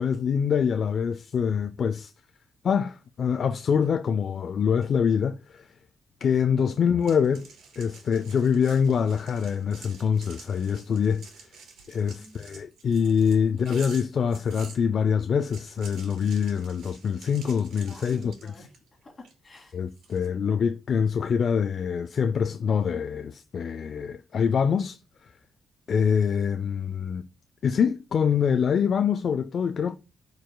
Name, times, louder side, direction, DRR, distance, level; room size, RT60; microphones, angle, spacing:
voice 1, 0.0-2.1 2.6-5.7 6.2-7.5 7.8-11.3 11.9-18.3 19.7-25.3 25.9-27.2 27.6-30.0, left 7 dB, 45° left, 0.3 m, -25 dB
sound 1, 7.0-14.8 15.3-18.9 19.2-20.3, right 5 dB, 90° right, 2.5 m, -49 dB
voice 2, 11.9-12.4 17.9-18.7 19.0-19.8, left 3 dB, 20° left, 2.3 m, -45 dB
14.0 x 4.7 x 2.2 m
wide cardioid pair, 175°, 0 cm